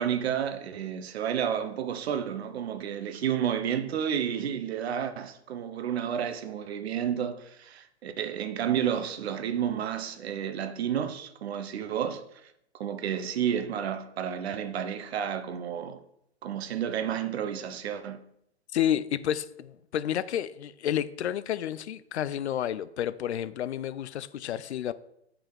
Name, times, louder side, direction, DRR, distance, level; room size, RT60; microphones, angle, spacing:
voice 1, 0.0-12.2 12.8-16.0 16.4-18.2, right 9 dB, 65° right, 0.9 m, -31 dB
voice 2, 18.7-24.9, left 10 dB, 75° left, 0.6 m, -30 dB
7.3 x 5.1 x 4.8 m
hypercardioid pair, 125°, 34 cm